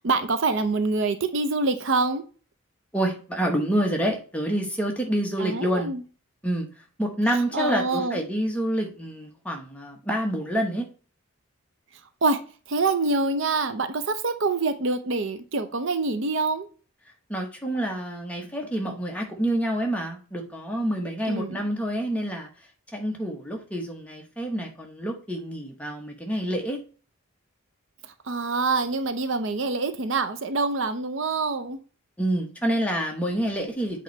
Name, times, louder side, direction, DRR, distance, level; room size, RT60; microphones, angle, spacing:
voice 1, 0.0-2.2 5.4-6.0 7.5-8.2 12.2-12.4 12.7-16.7 21.2-21.6 28.0-31.8, right 3 dB, 60° right, 0.6 m, -25 dB
voice 2, 2.9-5.9 6.4-6.7 7.0-10.9 17.3-22.5 22.9-26.8 32.2-34.0, right 1 dB, 5° left, 1.1 m, -27 dB
8.0 x 3.1 x 4.5 m
head